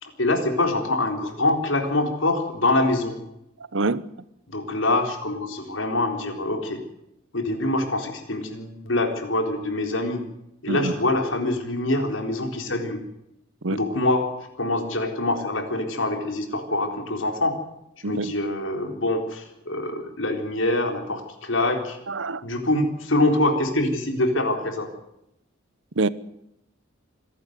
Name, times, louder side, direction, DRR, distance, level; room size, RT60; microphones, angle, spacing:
voice 1, 0.0-3.1 4.5-6.8 7.3-10.2 10.6-13.0 13.7-14.3 14.6-17.6 18.0-22.0 22.4-24.9, left 2 dB, 75° left, 3.9 m, -25 dB
voice 2, 3.7-4.0 10.7-10.9 13.6-13.8 18.0-18.3 22.1-22.4 26.0-26.1, right 3 dB, 70° right, 1.0 m, -25 dB
26.0 x 12.0 x 9.4 m
head